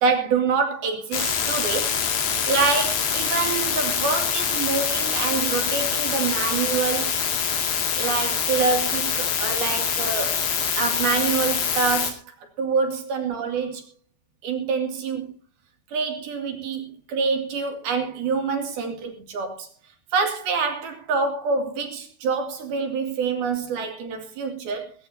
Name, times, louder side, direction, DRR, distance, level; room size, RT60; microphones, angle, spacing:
voice 1, 0.0-2.0 2.5-7.2 8.0-10.4 10.7-12.2 12.6-13.8 14.4-15.4 15.9-19.7 20.1-24.9, right 5 dB, 55° right, 4.0 m, -26 dB
sound 1, 1.1-12.1, left 7 dB, 50° left, 3.8 m, -25 dB
19.0 x 17.5 x 2.8 m
omnidirectional pair, 5.9 m